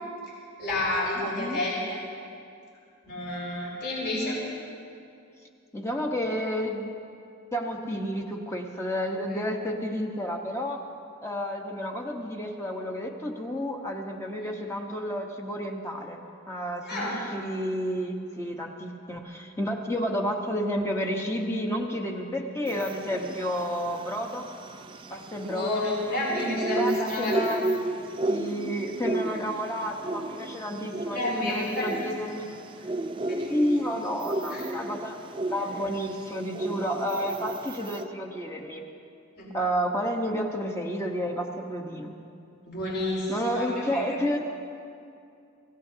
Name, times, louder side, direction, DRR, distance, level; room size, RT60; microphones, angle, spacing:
voice 1, 0.6-2.0 3.0-4.4 14.4-14.5 16.8-17.2 25.4-27.3 28.0-28.5 31.1-32.0 33.2-33.6 34.5-34.6 39.4-39.5 42.6-44.2, left 1 dB, 55° left, -6 dB, 4.9 m, -30 dB
voice 2, 1.2-1.6 5.7-6.9 7.5-10.8 11.2-16.2 16.5-24.5 25.1-25.8 26.7-27.7 28.3-32.5 33.5-35.2 35.5-38.8 39.5-42.1 43.3-44.4, equal, 15° left, 1 dB, 1.2 m, -31 dB
sound 1, 22.7-38.1, right 2 dB, 25° right, 0.4 m, -34 dB
25.5 x 16.5 x 2.9 m, 2.5 s
head